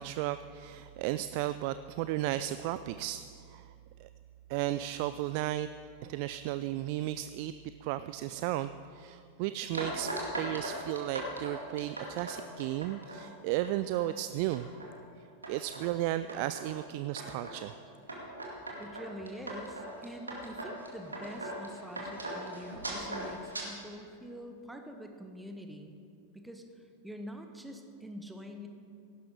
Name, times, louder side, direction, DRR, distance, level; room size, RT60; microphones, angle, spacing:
voice 1, 0.0-3.2 3.5-3.7 4.0-4.1 4.5-5.7 6.0-7.5 7.8-14.7 15.5-17.8, right 14 dB, 45° right, 13 dB, 0.3 m, -34 dB
sound 1, 9.7-13.2 13.6-14.0 14.4-14.9 15.4-15.9 16.3-16.7 17.2-17.6 18.1-23.6, right 1 dB, 80° right, 2.3 m, -39 dB
voice 2, 18.8-25.9 26.3-28.7, equal, 5° right, 4 dB, 1.2 m, -45 dB
16.0 x 12.0 x 4.9 m, 2.4 s
figure-of-eight pair, 90°, 0 cm